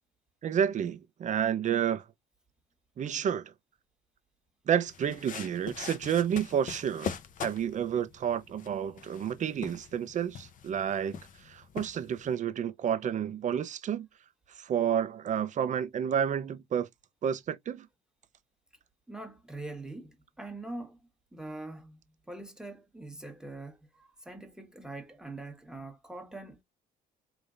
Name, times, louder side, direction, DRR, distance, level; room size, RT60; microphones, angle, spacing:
voice 1, 0.4-2.0 3.0-3.5 4.7-7.1 7.4-14.1 14.5-16.9 17.2-17.9, right 8 dB, 45° right, 0.9 m, -30 dB
sound 1, 4.9-12.4, left 7 dB, 50° left, 0.9 m, -43 dB
voice 2, 19.1-22.0 22.3-26.6, right 2 dB, 5° right, 1.6 m, -43 dB
5.0 x 3.8 x 2.7 m
cardioid pair, 110°, 17 cm